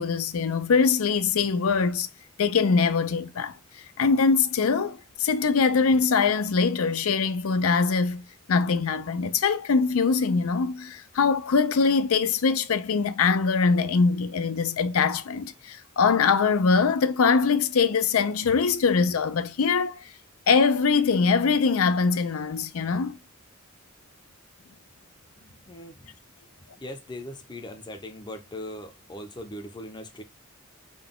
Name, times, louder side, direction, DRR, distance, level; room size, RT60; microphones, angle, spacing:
voice 1, 0.0-2.1 2.4-3.5 4.0-20.1 20.5-23.2, left 5 dB, 80° left, 0.5 m, -23 dB
voice 2, 25.4-26.1 26.8-30.2, left 1 dB, 20° left, 0.6 m, -40 dB
3.9 x 2.2 x 3.6 m
head